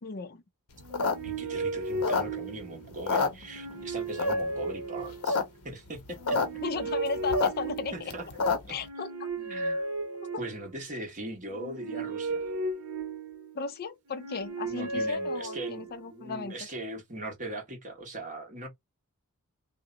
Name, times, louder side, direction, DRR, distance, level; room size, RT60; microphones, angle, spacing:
voice 1, 0.0-0.4 6.6-7.9 8.7-9.3 10.2-10.4 13.5-16.6, left 4 dB, 45° left, 0.5 m, -35 dB
sound 1, 0.8-2.6 2.9-3.8 4.2-4.6 5.0-5.4 5.7-5.8 5.9-6.5 6.8-8.8, left 4 dB, 75° left, 0.8 m, -28 dB
sound 2, 0.8-2.9 3.4-5.5 6.1-8.3 8.8-10.8 11.5-13.6 14.1-16.1, right 2 dB, 70° right, 0.8 m, -35 dB
voice 2, 1.2-6.4 7.9-8.3 9.4-9.8 10.4-12.5 14.6-18.7, right 1 dB, 35° right, 1.3 m, -40 dB
2.8 x 2.1 x 3.8 m
head